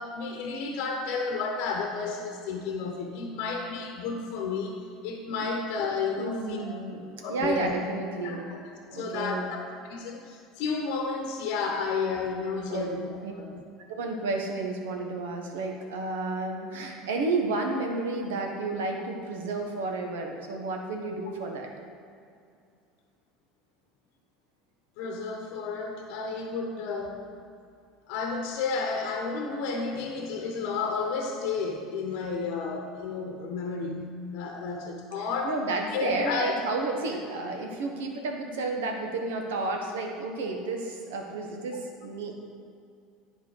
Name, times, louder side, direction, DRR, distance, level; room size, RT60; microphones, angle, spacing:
voice 1, 0.0-6.7 7.2-7.7 8.2-8.6 8.9-9.6 9.9-13.6 25.0-27.2 28.1-35.6 35.9-36.5 36.9-37.0, left 4 dB, 65° left, 2 dB, 0.9 m, -32 dB
voice 2, 6.2-8.5 8.8-9.6 12.7-12.9 13.2-13.3 13.9-21.7 35.4-42.3, right 3 dB, 80° right, 2 dB, 1.1 m, -31 dB
10.5 x 4.4 x 4.8 m, 2.4 s
hypercardioid pair, 75°, 0 cm